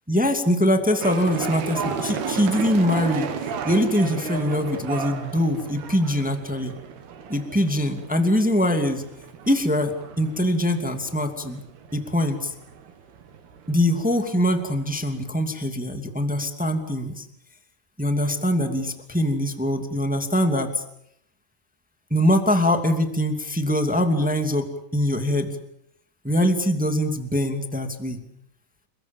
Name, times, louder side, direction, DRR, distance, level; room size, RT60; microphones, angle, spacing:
voice 1, 0.1-6.7 7.3-9.0 9.4-11.6 11.9-12.5 13.7-17.2 18.0-20.8 22.1-25.6 26.2-28.2, left 1 dB, 5° right, 6 dB, 1.0 m, -23 dB
sound 1, 1.0-15.3, right 6 dB, 65° right, 3.8 m, -34 dB
29.5 x 22.5 x 7.3 m, 0.73 s
omnidirectional pair, 5.1 m